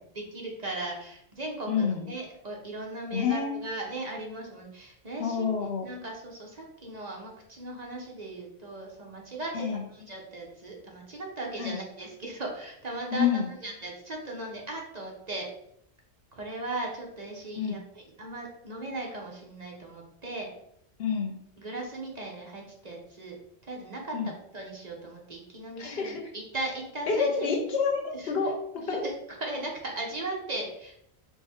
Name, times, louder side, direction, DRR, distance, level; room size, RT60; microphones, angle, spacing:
voice 1, 0.1-5.5 5.8-15.5 16.3-20.5 21.6-23.3 23.7-27.5 28.1-28.3 28.7-31.0, right 2 dB, 40° right, -1 dB, 0.9 m, -38 dB
voice 2, 1.7-2.1 3.1-3.5 5.2-5.9 9.5-9.8 11.6-11.8 13.1-13.5 17.6-17.8 21.0-21.4 24.1-24.3 25.8-26.3 27.1-29.1, left 6 dB, 70° left, 2 dB, 1.0 m, -28 dB
4.6 x 2.3 x 4.2 m, 0.72 s
omnidirectional pair, 1.1 m